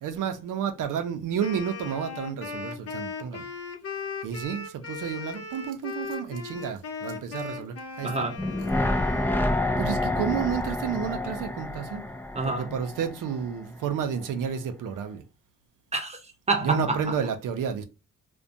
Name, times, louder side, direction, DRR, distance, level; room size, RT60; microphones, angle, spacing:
voice 1, 0.0-3.4 4.2-8.1 9.7-12.0 12.4-15.2 16.6-17.8, right 7 dB, 75° right, 0.6 m, -31 dB
Wind instrument woodwind instrument, 1.4-9.8, left 5 dB, 45° left, 0.7 m, -38 dB
voice 2, 8.0-8.4 12.3-12.8 15.9-17.2, right 2 dB, 20° right, 0.7 m, -28 dB
sound 1, 8.4-13.5 13.8-13.9, left 1 dB, 5° left, 0.4 m, -28 dB
2.4 x 2.2 x 2.6 m
cardioid pair, 75°, 32 cm